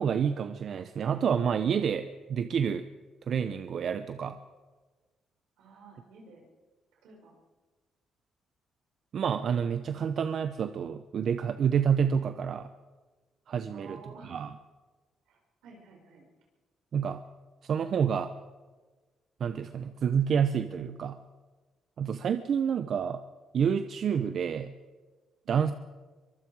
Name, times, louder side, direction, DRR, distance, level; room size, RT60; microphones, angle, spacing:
voice 1, 0.0-2.9 3.3-4.4 9.1-12.7 13.5-14.0 14.2-14.5 16.9-17.2 17.6-18.3 19.4-21.2 22.0-23.2 23.5-24.7 25.5-25.7, right 7 dB, 60° right, 10 dB, 0.8 m, -28 dB
voice 2, 5.6-6.4 7.0-7.4 13.7-14.4 15.3-16.3, right 3 dB, 90° right, 0 dB, 6.0 m, -52 dB
24.0 x 23.5 x 4.8 m, 1.4 s
cardioid pair, 90°, 0 cm